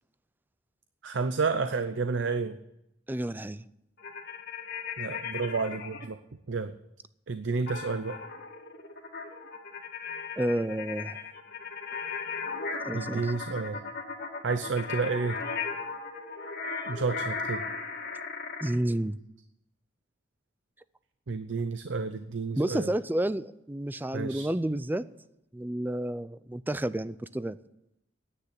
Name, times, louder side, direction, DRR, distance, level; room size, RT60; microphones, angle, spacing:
voice 1, 1.0-2.6 5.0-6.2 6.5-6.7 7.3-8.2 12.9-13.8 14.4-15.4 16.9-17.6 21.3-22.9 24.1-24.5, right 4 dB, 70° right, 11 dB, 0.7 m, -30 dB
voice 2, 3.1-3.6 10.4-11.2 12.8-13.3 18.6-19.2 22.6-25.0 25.5-27.6, right 1 dB, 10° right, 16 dB, 0.4 m, -30 dB
sound 1, 4.0-6.0 7.7-18.7, left 4 dB, 55° left, 2.1 m, -37 dB
9.8 x 9.2 x 9.9 m, 0.84 s
head